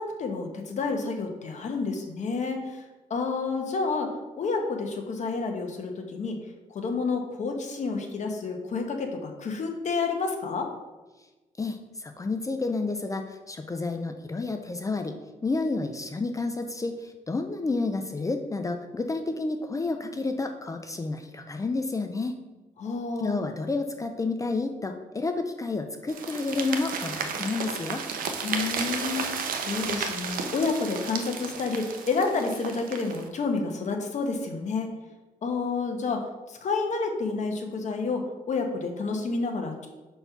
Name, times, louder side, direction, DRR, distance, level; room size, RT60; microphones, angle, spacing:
voice 1, 0.0-2.8 3.1-6.4 6.7-10.7 22.8-23.4 28.4-34.9 35.4-39.9, left 4 dB, 55° left, 3 dB, 1.1 m, -29 dB
voice 2, 11.6-15.2 15.4-22.4 23.2-28.0, left 3 dB, 25° left, 6 dB, 0.5 m, -30 dB
sound 1, 26.1-33.3, right 5 dB, 90° right, 0.8 m, -33 dB
5.3 x 4.3 x 5.9 m, 1.2 s
cardioid pair, 120°, 14 cm